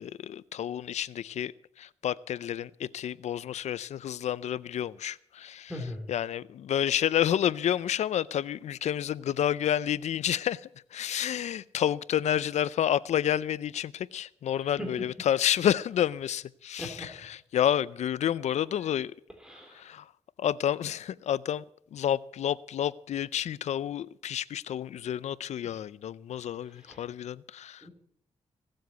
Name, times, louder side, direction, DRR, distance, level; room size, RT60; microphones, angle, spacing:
voice 1, 0.0-1.5 1.8-5.7 6.1-19.1 19.8-20.1 20.4-21.6 21.9-27.9, left 10 dB, 80° left, 0.5 m, -30 dB
voice 2, 5.7-6.1 14.5-15.1 16.8-17.1 18.8-18.9 19.4-19.9 26.6-27.1 27.8-27.9, left 1 dB, 5° right, 2.9 m, -41 dB
17.0 x 7.8 x 8.0 m
cardioid pair, 80°, 11 cm